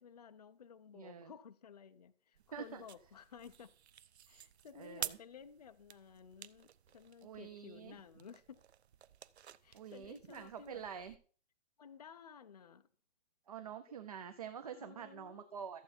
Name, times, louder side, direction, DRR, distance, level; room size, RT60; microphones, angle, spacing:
voice 1, 0.0-3.7 4.3-6.7 6.9-8.6 9.6-10.9 11.8-12.9 14.6-15.6, left 7 dB, 35° left, 0.5 m, -55 dB
voice 2, 0.9-1.3 2.5-2.8 4.8-5.2 7.2-7.9 9.7-11.2 13.5-15.8, right 7 dB, 35° right, 0.7 m, -47 dB
sound 1, 2.3-11.2, right 9 dB, 70° right, 0.7 m, -51 dB
14.0 x 7.7 x 4.3 m
hypercardioid pair, 180°, 34 cm